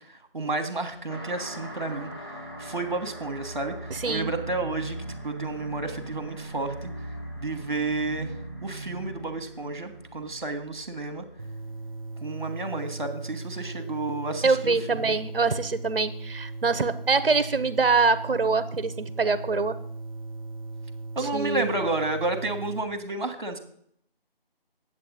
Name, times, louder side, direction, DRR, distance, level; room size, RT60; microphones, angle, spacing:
voice 1, 0.1-2.1 2.6-5.0 5.2-6.9 7.4-8.3 8.6-11.3 12.2-15.2 21.1-23.6, right 2 dB, 50° right, 8 dB, 1.3 m, -31 dB
sound 1, 1.1-12.1, right 1 dB, 25° left, 0.8 m, -39 dB
voice 2, 3.9-4.3 14.4-19.8 21.3-21.7, right 4 dB, 70° right, 14 dB, 0.8 m, -24 dB
sound 2, 11.4-22.8, right 3 dB, 35° right, 0.7 m, -38 dB
9.7 x 7.9 x 3.9 m, 0.66 s
figure-of-eight pair, 165°, 30 cm